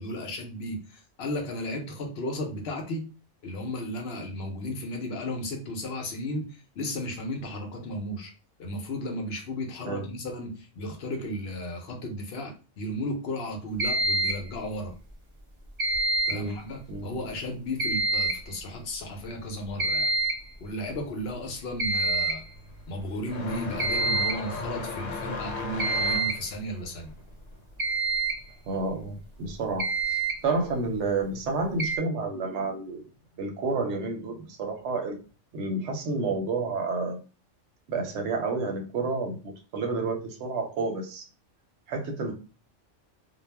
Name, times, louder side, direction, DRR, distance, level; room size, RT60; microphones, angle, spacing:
voice 1, 0.0-3.1 3.4-8.3 8.6-14.9 16.3-20.1 20.6-22.4 22.9-27.1, left 1 dB, 60° left, 3 dB, 0.8 m, -34 dB
sound 1, 13.8-14.5 15.8-16.5 17.8-18.5 19.8-20.5 21.8-22.5 23.8-24.5 25.8-26.5 27.8-28.4 29.5-29.6 29.8-30.4 31.8-32.0, right 3 dB, 40° right, 0.4 m, -26 dB
voice 2, 16.3-16.6 16.9-17.1 28.7-33.0 33.4-35.2 35.5-37.2 37.9-41.3 41.9-42.3, right 3 dB, 70° right, 4 dB, 0.9 m, -30 dB
sound 2, 21.3-29.6 29.9-30.9 31.9-32.0 32.9-33.0 34.7-34.8, left 3 dB, 80° left, 1.0 m, -37 dB
2.3 x 2.0 x 3.3 m, 0.34 s
omnidirectional pair, 1.3 m